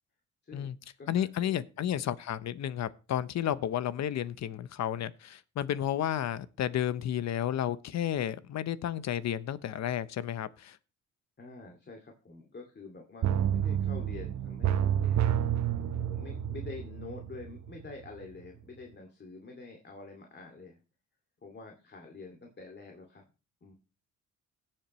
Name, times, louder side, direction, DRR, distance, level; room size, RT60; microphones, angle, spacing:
voice 1, 0.4-1.6 11.4-15.3 15.9-20.8 21.4-23.2 23.6-23.7, left 3 dB, 35° left, 2.4 m, -47 dB
voice 2, 1.1-10.8, left 10 dB, 65° left, 0.9 m, -32 dB
sound 1, 13.2-17.9 18.2-18.3, right 10 dB, 65° right, 1.1 m, -29 dB
17.5 x 7.6 x 3.1 m
cardioid pair, 90°, 30 cm